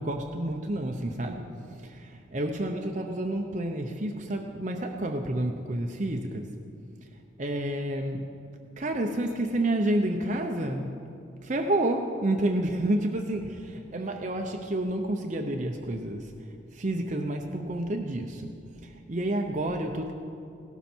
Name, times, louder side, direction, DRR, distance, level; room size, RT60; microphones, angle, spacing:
voice 1, 0.0-6.4 7.4-8.3 8.8-10.9 11.4-16.3 16.7-18.5 18.8-20.1, right 1 dB, 35° right, 3 dB, 0.7 m, -29 dB
17.0 x 12.5 x 4.5 m, 2.5 s
head